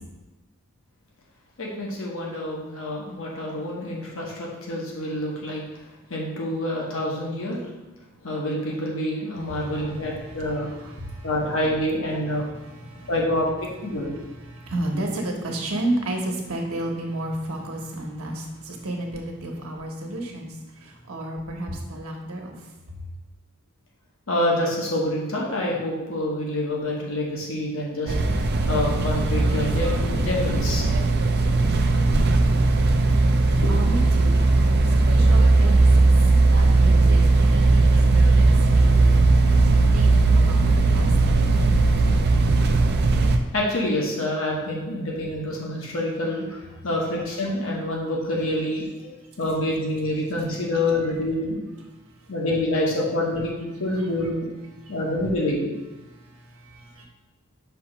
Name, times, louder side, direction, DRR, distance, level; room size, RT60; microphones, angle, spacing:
voice 1, 1.6-5.6 6.1-7.6 8.2-10.7 11.2-12.5 13.1-14.1 24.3-28.1 28.7-30.9 33.6-33.7 43.5-48.9 49.4-51.6 52.3-54.5 54.9-55.7, left 1 dB, 70° left, -3 dB, 1.1 m, -27 dB
voice 2, 9.3-11.4 12.3-13.3 13.8-22.7 33.6-39.2 39.9-41.9 52.2-52.3 53.9-54.3 54.8-55.0 56.0-57.1, right 1 dB, 85° right, 1 dB, 1.1 m, -33 dB
sound 1, 28.1-43.4, right 3 dB, 50° right, 0.5 m, -18 dB
5.8 x 3.0 x 5.4 m, 1.1 s
head